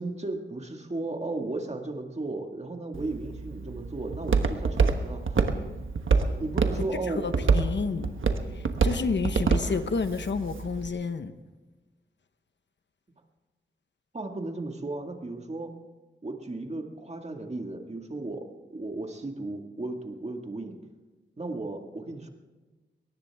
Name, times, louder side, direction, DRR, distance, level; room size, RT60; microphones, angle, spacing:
voice 1, 0.0-5.5 6.3-7.7 14.1-15.7 16.2-20.8 21.4-22.3, right 2 dB, 35° right, 3 dB, 2.0 m, -35 dB
Walk footsteps, 2.9-10.9, right 4 dB, 90° right, 1.2 m, -27 dB
voice 2, 7.2-8.1 8.5-11.3, left 4 dB, 65° left, 9 dB, 1.0 m, -30 dB
21.5 x 19.0 x 3.6 m, 1.2 s
wide cardioid pair, 110°, 20 cm